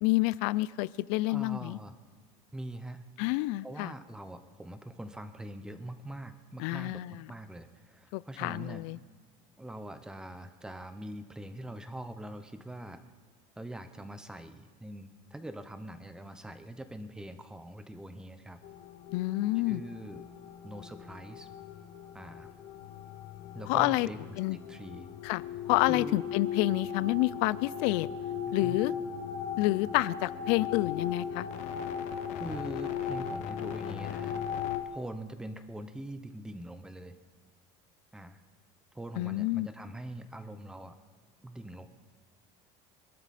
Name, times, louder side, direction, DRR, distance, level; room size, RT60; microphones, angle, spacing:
voice 1, 0.0-1.8 3.2-3.9 6.6-7.2 8.1-9.0 19.1-19.8 23.7-24.1 24.4-24.6 25.2-25.4 25.7-28.1 28.5-28.9 29.6-31.5 39.2-39.7, left 19 dB, 70° left, 20 dB, 0.5 m, -28 dB
voice 2, 1.3-1.9 2.5-3.0 3.6-8.8 9.6-13.0 13.6-18.6 19.7-20.3 20.6-21.5 22.1-22.5 23.5-25.1 25.9-26.2 28.5-28.8 32.4-34.4 34.9-37.1 38.1-38.4 38.9-40.9 41.4-41.9, right 1 dB, 5° right, 9 dB, 0.8 m, -43 dB
sound 1, 18.6-34.8, left 8 dB, 55° left, 1.1 m, -37 dB
25.0 x 12.0 x 4.2 m, 1.5 s
cardioid pair, 170°, 15 cm